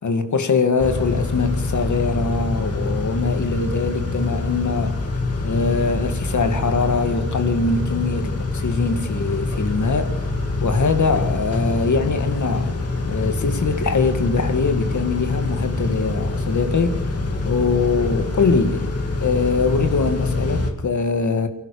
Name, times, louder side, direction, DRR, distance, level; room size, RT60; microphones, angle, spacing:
voice 1, 0.0-5.0 5.4-10.2 10.6-17.0 17.5-18.8 19.2-21.5, left 4 dB, 70° left, 2.4 m, -22 dB
Car / Idling / Accelerating revving vroom, 0.8-20.7, left 2 dB, 55° left, 3.3 m, -25 dB
29.5 x 12.0 x 8.8 m
wide cardioid pair, 145°, 30 cm